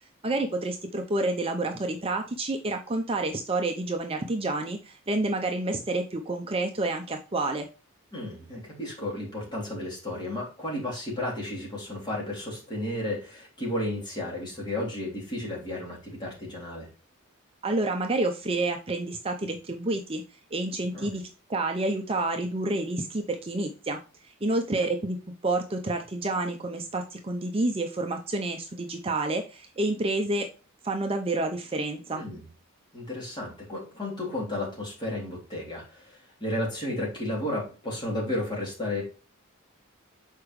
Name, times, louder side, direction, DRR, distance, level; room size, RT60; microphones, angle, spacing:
voice 1, 0.2-7.7 17.6-20.2 20.5-21.2 21.5-25.2 25.4-30.5 30.8-32.2, right 2 dB, 25° right, 4 dB, 0.6 m, -29 dB
voice 2, 8.1-16.9 20.9-21.1 32.1-32.5 32.9-39.0, left 1 dB, 20° left, -4 dB, 3.3 m, -33 dB
6.7 x 4.8 x 3.1 m, 0.33 s
head